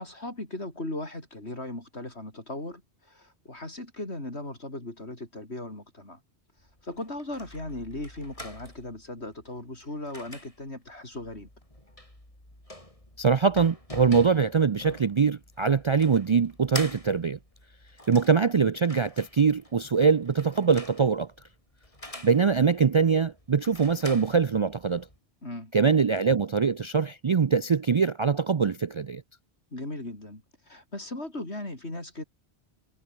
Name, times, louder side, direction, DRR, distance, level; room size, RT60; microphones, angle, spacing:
voice 1, 0.0-6.2 6.8-11.5 25.4-25.7 29.7-32.2, left 1 dB, 80° left, 6.7 m, -38 dB
sound 1, 6.6-25.2, left 1 dB, 30° left, 6.3 m, -45 dB
voice 2, 13.2-17.4 18.1-21.3 22.2-25.1 25.7-29.2, right 5 dB, 45° right, 0.4 m, -23 dB
omnidirectional pair, 1.1 m